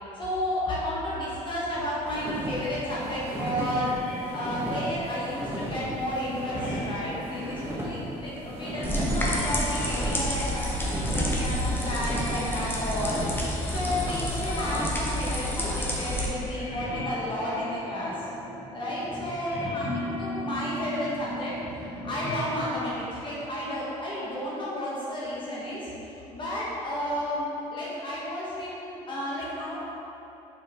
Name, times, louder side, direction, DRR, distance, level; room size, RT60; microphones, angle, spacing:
voice 1, 0.1-4.0 4.3-13.2 13.7-18.1 18.7-25.9 26.3-29.8, left 1 dB, 35° left, -7 dB, 1.3 m, -32 dB
sound 1, 2.1-15.3, equal, 15° right, 1.3 m, -35 dB
sound 2, 3.0-22.9, left 1 dB, 65° left, 1.3 m, -39 dB
sound 3, 8.8-16.3, equal, 15° left, 0.9 m, -30 dB
5.5 x 4.7 x 3.6 m, 3.0 s
cardioid pair, 100°, 15 cm